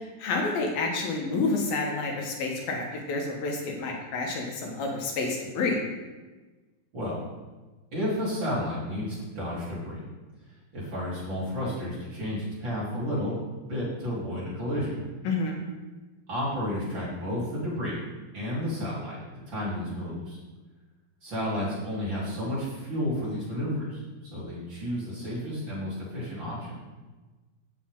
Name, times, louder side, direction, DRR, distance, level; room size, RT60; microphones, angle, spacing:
voice 1, 0.2-2.8 3.1-5.8 15.3-15.6, left 3 dB, 75° left, 0 dB, 3.5 m, -29 dB
voice 2, 7.9-10.0 10.7-13.4 13.7-15.0 16.3-18.0 18.3-19.2 19.5-20.4 21.2-26.7, equal, 30° right, -7 dB, 4.4 m, -31 dB
16.5 x 8.4 x 3.8 m, 1.2 s
omnidirectional pair, 4.2 m